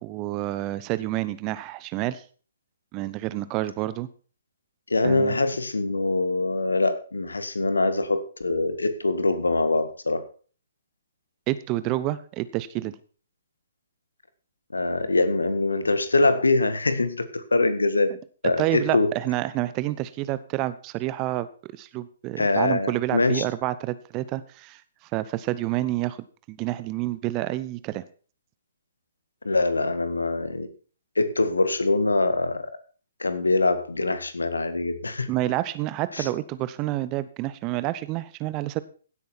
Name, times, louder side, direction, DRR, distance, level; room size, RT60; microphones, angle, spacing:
voice 1, 0.0-2.2 2.9-4.1 5.0-5.3 11.5-12.9 18.6-21.5 21.7-24.8 25.1-26.2 26.5-28.0 35.3-38.8, right 16 dB, 25° right, 16 dB, 0.7 m, -28 dB
voice 2, 4.9-10.2 14.7-18.1 18.4-19.1 22.4-23.4 29.4-30.7 31.1-32.7 33.2-35.3 36.1-36.3, left 2 dB, 75° left, 12 dB, 1.6 m, -23 dB
16.0 x 8.5 x 4.4 m, 0.40 s
figure-of-eight pair, 125°, 0 cm